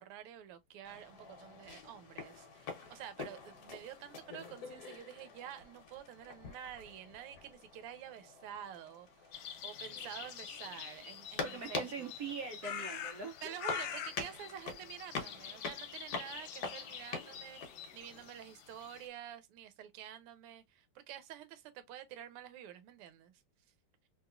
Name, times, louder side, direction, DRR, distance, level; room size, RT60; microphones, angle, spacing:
voice 1, 0.0-12.1 13.4-23.4, right 10 dB, 90° right, 1.6 m, -49 dB
sound 1, 0.8-18.3, left 4 dB, 55° left, 1.1 m, -46 dB
sound 2, 9.3-19.1, left 8 dB, 80° left, 1.5 m, -46 dB
voice 2, 11.4-13.5, right 5 dB, 70° right, 0.9 m, -42 dB
3.4 x 2.9 x 2.3 m
omnidirectional pair, 2.4 m